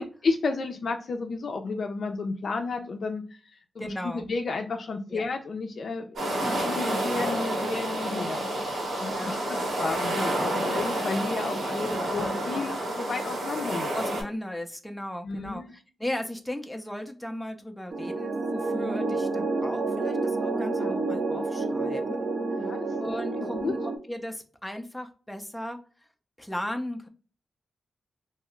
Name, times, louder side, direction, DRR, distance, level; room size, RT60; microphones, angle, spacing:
voice 1, 0.0-8.5 8.7-13.9 15.2-15.7 20.8-21.0 22.6-22.9 23.4-23.7, left 4 dB, 65° left, 5 dB, 0.4 m, -32 dB
voice 2, 3.8-4.3 5.1-5.2 6.3-6.8 9.1-10.0 10.7-10.9 11.8-12.2 13.9-22.3 23.0-25.8 26.4-27.1, left 1 dB, 5° left, 5 dB, 0.4 m, -37 dB
sound 1, 6.2-14.2, right 1 dB, 85° right, 1.6 m, -29 dB
sound 2, 17.9-24.0, right 3 dB, 45° right, 0.5 m, -29 dB
2.8 x 2.3 x 3.0 m, 0.38 s
cardioid pair, 85°, 0 cm